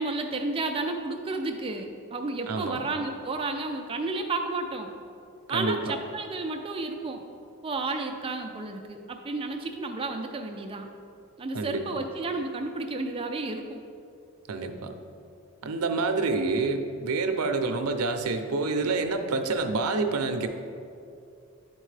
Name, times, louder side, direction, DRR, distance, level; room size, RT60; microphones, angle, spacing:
voice 1, 0.0-4.9 5.5-7.2 7.6-10.9 11.4-13.8, right 3 dB, 25° right, 4 dB, 0.4 m, -32 dB
voice 2, 2.5-2.8 5.5-6.0 11.5-11.8 14.5-14.9 15.6-20.5, right 3 dB, 85° right, 6 dB, 0.6 m, -27 dB
10.5 x 4.4 x 3.3 m, 2.5 s
head